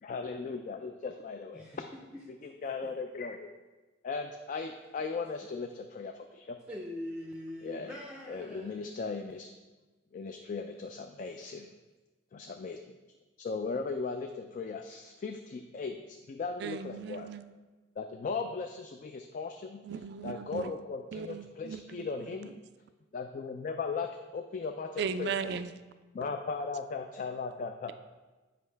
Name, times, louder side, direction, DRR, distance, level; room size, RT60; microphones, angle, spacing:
voice 1, 0.0-1.7 2.4-3.5 4.0-6.6 7.6-7.9 8.3-9.5 10.1-11.7 12.3-12.8 13.4-17.3 18.0-19.8 20.2-22.5 23.1-25.3 26.1-27.9, left 4 dB, 45° left, 5 dB, 0.3 m, -37 dB
voice 2, 1.5-2.2 2.8-2.9 6.7-8.9, left 1 dB, 5° right, -2 dB, 0.5 m, -43 dB
voice 3, 16.6-17.5 19.8-20.7 21.1-22.4 25.0-25.7, right 6 dB, 60° right, 11 dB, 0.3 m, -37 dB
7.6 x 5.2 x 3.3 m, 1.2 s
head